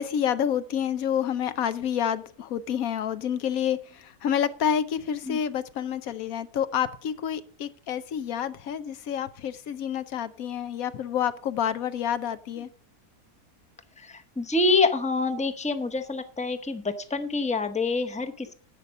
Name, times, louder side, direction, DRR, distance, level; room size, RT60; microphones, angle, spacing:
voice 1, 0.0-12.7, left 9 dB, 65° left, 13 dB, 1.1 m, -28 dB
voice 2, 14.0-18.5, left 3 dB, 5° left, 8 dB, 0.6 m, -26 dB
11.0 x 8.2 x 5.4 m, 0.43 s
omnidirectional pair, 1.7 m